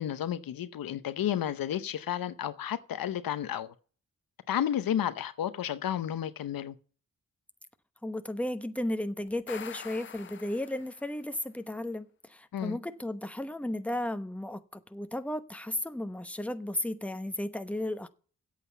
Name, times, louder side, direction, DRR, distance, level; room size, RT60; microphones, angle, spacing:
voice 1, 0.0-3.7 4.5-6.7 12.5-12.8, left 10 dB, 85° left, 0.8 m, -32 dB
voice 2, 8.0-18.1, left 1 dB, 5° left, 1.0 m, -34 dB
sound 1, 9.3-11.2, left 8 dB, 35° left, 0.4 m, -45 dB
8.4 x 7.6 x 7.9 m
cardioid pair, 65°, 34 cm